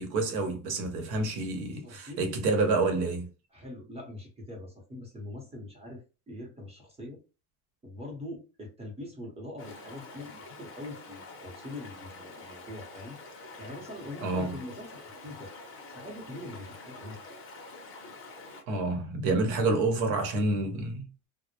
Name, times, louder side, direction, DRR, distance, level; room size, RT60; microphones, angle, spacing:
voice 1, 0.0-3.3 14.2-14.6 18.7-21.1, right 3 dB, 65° right, 1.0 m, -28 dB
voice 2, 1.8-2.4 3.5-7.2 7.8-15.6 15.9-17.2, left 1 dB, 15° right, 0.8 m, -43 dB
Stream, 9.6-18.6, left 3 dB, 30° left, 0.6 m, -47 dB
2.1 x 2.0 x 2.9 m
cardioid pair, 130°, 45 cm